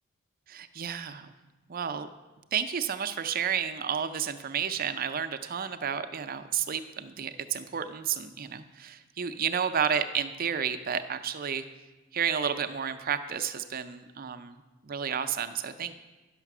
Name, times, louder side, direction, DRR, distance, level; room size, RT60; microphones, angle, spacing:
voice 1, 0.5-1.3 1.7-2.1 2.5-11.6 12.1-14.5 14.8-15.9, right 7 dB, 45° right, 9 dB, 0.5 m, -31 dB
10.0 x 6.5 x 6.0 m, 1.2 s
head